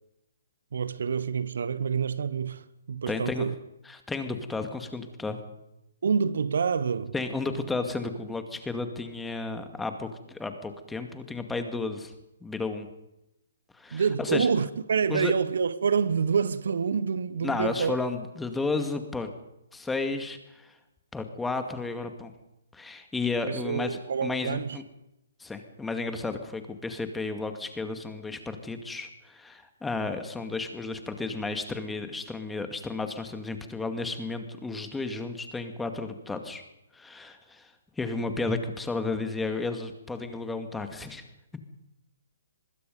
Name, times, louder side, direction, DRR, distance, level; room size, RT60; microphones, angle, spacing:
voice 1, 0.7-3.5 6.0-7.1 13.9-18.0 23.5-24.8, right 6 dB, 60° right, 1.1 m, -27 dB
voice 2, 3.1-3.5 3.9-5.4 7.1-12.1 12.4-12.9 13.7-14.5 15.1-15.3 17.4-19.3 19.7-20.8 21.1-22.3 22.7-24.8 25.4-36.6 36.9-41.2, left 3 dB, 5° left, 2.1 m, -33 dB
24.0 x 21.0 x 5.4 m
figure-of-eight pair, 130°, 0 cm